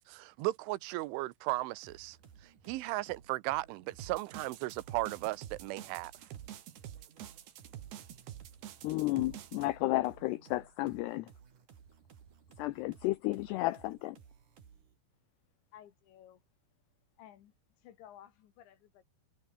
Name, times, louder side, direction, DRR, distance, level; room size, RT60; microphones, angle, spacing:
voice 1, 0.1-2.2 2.7-6.1, right 19 dB, 80° right, 3.4 m, -36 dB
sound 1, 1.8-15.0, right 7 dB, 45° right, 3.9 m, -58 dB
sound 2, 4.0-9.7, right 11 dB, 60° right, 3.7 m, -47 dB
voice 2, 8.8-11.3 12.6-14.2, left 18 dB, 90° left, 2.3 m, -32 dB
voice 3, 15.7-16.4 17.2-19.0, left 11 dB, 70° left, 4.0 m, -56 dB
omnidirectional pair, 5.7 m